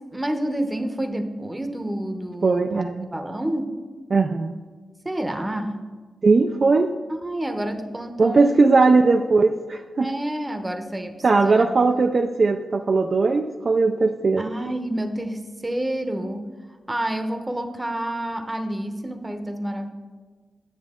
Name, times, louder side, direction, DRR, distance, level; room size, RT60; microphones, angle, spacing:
voice 1, 0.1-2.8 3.1-3.7 5.0-5.8 7.2-8.6 8.9-9.0 10.0-11.7 11.9-12.0 14.4-16.5 16.9-19.9, right 1 dB, 15° right, 7 dB, 0.8 m, -29 dB
voice 2, 2.4-3.1 4.1-4.6 6.2-6.9 8.2-10.1 11.2-14.4, right 3 dB, 45° right, 5 dB, 0.3 m, -19 dB
9.7 x 7.1 x 3.6 m, 1.4 s
cardioid pair, 90°, 0 cm